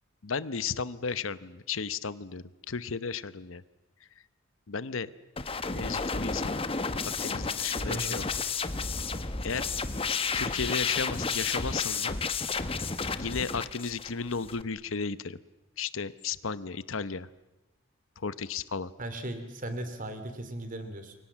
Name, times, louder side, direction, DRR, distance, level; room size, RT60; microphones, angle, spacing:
voice 1, 0.2-3.6 4.7-5.1 5.5-6.6 7.0-8.2 9.4-9.7 10.1-12.2 13.2-15.4 15.8-17.3 18.2-18.9, left 5 dB, 70° left, 16 dB, 0.9 m, -34 dB
sound 1, 5.4-14.6, left 4 dB, 25° left, 1.1 m, -32 dB
voice 2, 7.9-8.2 19.0-21.1, right 1 dB, 40° right, 9 dB, 3.1 m, -37 dB
28.5 x 23.5 x 7.4 m, 1.0 s
head